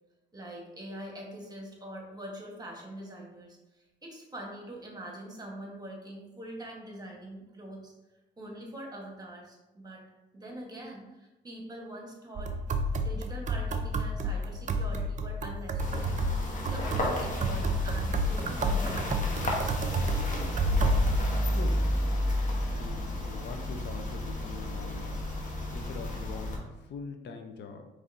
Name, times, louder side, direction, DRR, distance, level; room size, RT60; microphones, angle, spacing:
voice 1, 0.3-7.9 8.4-10.0 10.3-12.6 13.0-16.2 16.7-19.2, right 1 dB, 20° right, -1 dB, 1.2 m, -43 dB
sound 1, 12.4-21.3, right 1 dB, 40° right, 0.4 m, -30 dB
sound 2, 15.8-26.6, equal, 40° left, 1.1 m, -32 dB
voice 2, 21.5-25.2 25.7-27.9, left 5 dB, 60° left, 5 dB, 0.5 m, -43 dB
5.1 x 3.1 x 2.6 m, 1.0 s
cardioid pair, 90°, 20 cm